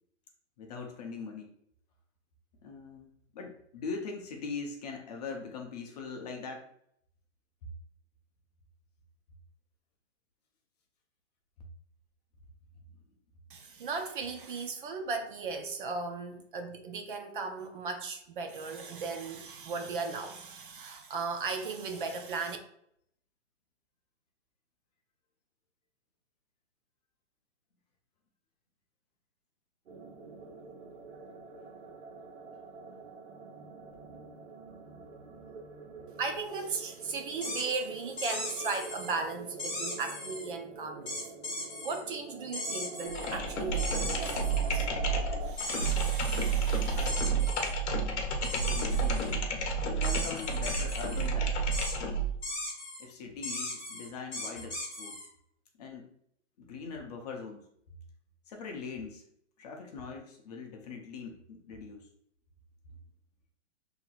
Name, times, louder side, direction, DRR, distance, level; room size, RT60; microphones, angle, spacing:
voice 1, 0.6-1.5 2.6-6.7 46.9-47.5 48.4-49.4 49.8-51.6 53.0-55.2 55.8-56.1 56.6-57.7 58.5-59.2 59.6-62.1, left 4 dB, 35° left, 0.6 m, -42 dB
voice 2, 13.5-22.6 36.2-41.2 41.8-44.9 45.4-47.1, right 4 dB, 45° right, 0.5 m, -37 dB
sound 1, 29.9-45.5, right 4 dB, 80° right, 1.3 m, -46 dB
sound 2, 37.4-37.8 38.2-39.1 39.6-40.5 41.1-42.0 42.5-43.4 43.8-44.7 45.6-46.6 47.1-47.7 48.4-49.3 50.0-51.3 51.7-52.0 52.4-53.0 53.4-55.3, left 1 dB, 10° left, 1.4 m, -38 dB
sound 3, 43.1-52.4, right 4 dB, 60° left, 0.9 m, -30 dB
5.7 x 2.8 x 2.4 m
hypercardioid pair, 155°, 37 cm